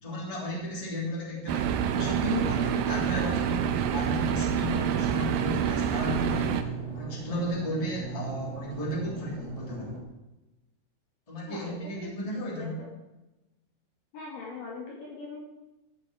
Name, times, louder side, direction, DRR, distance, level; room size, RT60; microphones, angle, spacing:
voice 1, 0.0-10.0 11.3-12.8, equal, 10° left, -3 dB, 2.5 m, -34 dB
sound 1, 1.5-6.6, right 9 dB, 80° right, 2.3 m, -27 dB
sound 2, 3.6-10.0, right 3 dB, 55° right, 4.1 m, -40 dB
voice 2, 11.5-12.2 12.5-12.9 14.1-15.4, left 3 dB, 60° left, -2 dB, 3.0 m, -41 dB
13.0 x 8.4 x 4.8 m, 1.0 s
omnidirectional pair, 4.9 m